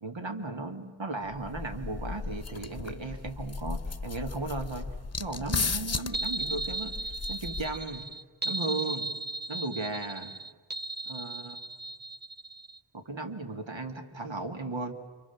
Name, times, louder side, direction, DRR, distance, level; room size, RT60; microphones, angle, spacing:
voice 1, 0.0-4.9 5.2-6.9 7.3-8.1 8.4-9.1 9.5-10.3 11.1-11.6 12.9-14.9, right 2 dB, 65° right, 6 dB, 2.5 m, -36 dB
sound 1, 1.3-8.0, left 4 dB, 30° left, 1.0 m, -36 dB
sound 2, 6.1-12.8, right 2 dB, 20° right, 1.0 m, -36 dB
29.5 x 26.5 x 7.3 m, 1.3 s
wide cardioid pair, 60°, 48 cm